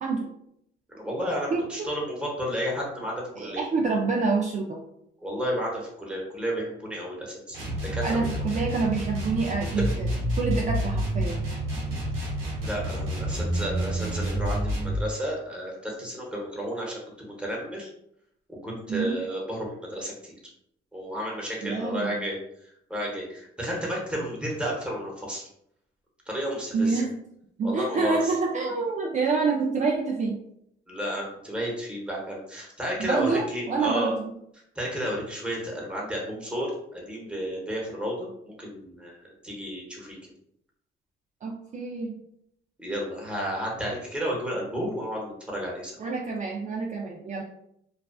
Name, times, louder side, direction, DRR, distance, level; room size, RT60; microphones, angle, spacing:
voice 1, 0.0-0.3 1.5-1.9 3.3-4.8 8.0-10.1 10.4-11.4 18.9-19.2 21.6-22.2 26.7-27.2 27.6-30.4 33.0-34.3 41.4-42.2 46.0-47.4, right 4 dB, 40° right, -1 dB, 0.4 m, -27 dB
voice 2, 0.9-3.6 5.2-7.6 7.9-8.0 12.6-17.9 18.6-20.3 20.9-22.4 22.9-25.5 26.3-27.0 27.6-28.3 30.9-34.1 34.8-40.2 42.8-45.9, equal, 5° right, -3 dB, 0.9 m, -32 dB
sound 1, 7.5-15.0, right 1 dB, 85° right, 0.8 m, -29 dB
2.4 x 2.3 x 2.2 m, 0.74 s
cardioid pair, 90°, 20 cm